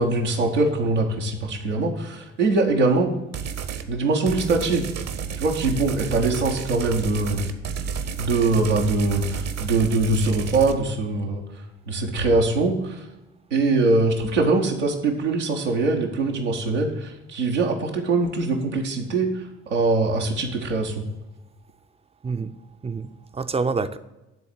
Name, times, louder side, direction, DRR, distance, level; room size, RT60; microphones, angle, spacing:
voice 1, 0.0-3.1 3.9-4.9 5.3-7.5 8.2-11.4 11.9-13.0 13.5-21.1, right 3 dB, 90° right, -1 dB, 0.9 m, -22 dB
sound 1, 3.3-3.9 4.3-10.7, right 7 dB, 50° right, 0.8 m, -31 dB
voice 2, 22.8-24.0, right 4 dB, 20° right, 11 dB, 0.5 m, -27 dB
9.7 x 3.9 x 7.3 m, 1.0 s
figure-of-eight pair, 45°, 35 cm